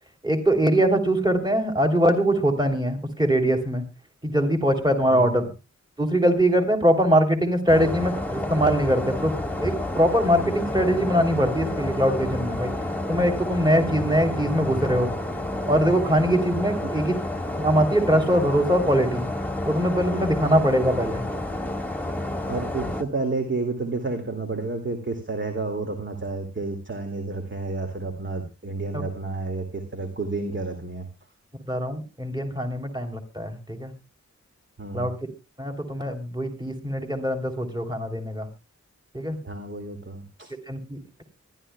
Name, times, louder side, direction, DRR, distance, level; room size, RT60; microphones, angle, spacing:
voice 1, 0.2-3.8 4.2-5.5 6.0-12.7 13.1-15.1 15.7-17.1 17.6-19.3 19.6-21.2 28.9-29.0 31.7-33.9 34.9-35.1 35.6-38.5 39.1-39.4 40.7-41.2, equal, 15° right, 4 dB, 3.2 m, -22 dB
voice 2, 5.1-5.4 22.5-31.0 34.8-35.1 39.4-40.5, right 3 dB, 40° right, 4 dB, 2.3 m, -30 dB
sound 1, 7.7-23.0, left 1 dB, 5° left, 1.8 m, -30 dB
24.0 x 11.5 x 2.3 m, 0.28 s
cardioid pair, 60°, 29 cm